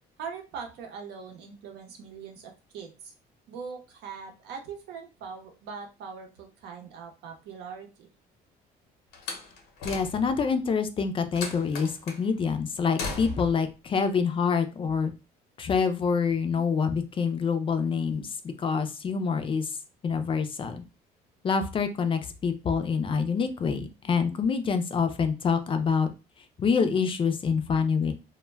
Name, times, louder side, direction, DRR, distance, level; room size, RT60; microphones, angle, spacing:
voice 1, 0.2-3.1 3.5-8.1, right 6 dB, 80° right, 3 dB, 0.7 m, -41 dB
Slam, 9.1-10.5 11.4-12.2 13.0-13.6, left 3 dB, 85° left, 0.7 m, -37 dB
voice 2, 9.8-11.9 12.2-15.1 15.6-19.8 20.0-20.8 21.4-26.1 26.6-28.1, left 5 dB, 30° left, 8 dB, 0.3 m, -26 dB
2.1 x 2.1 x 3.2 m, 0.29 s
cardioid pair, 110°, 17 cm